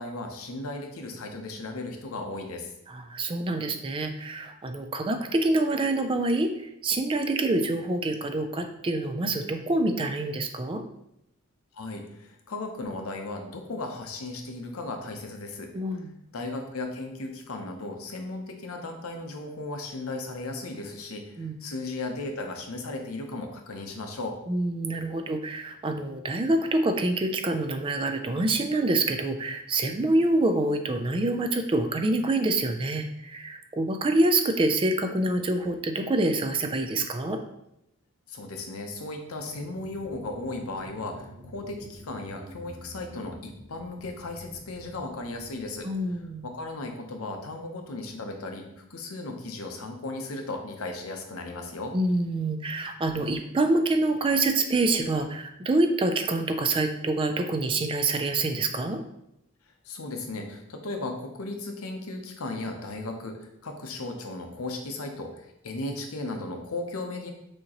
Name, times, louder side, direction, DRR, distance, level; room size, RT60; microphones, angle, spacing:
voice 1, 0.0-2.7 11.7-15.7 16.3-24.4 38.3-45.9 46.4-51.9 59.8-67.3, left 2 dB, 75° left, 3 dB, 0.8 m, -36 dB
voice 2, 2.9-6.5 6.8-10.8 15.7-16.1 21.4-21.5 24.5-37.4 45.8-46.5 51.9-59.0, right 2 dB, 25° right, 6 dB, 0.3 m, -26 dB
sound 1, 38.9-47.8 48.3-48.4, equal, ahead, 1.2 m, -49 dB
6.2 x 2.9 x 2.9 m, 0.81 s
head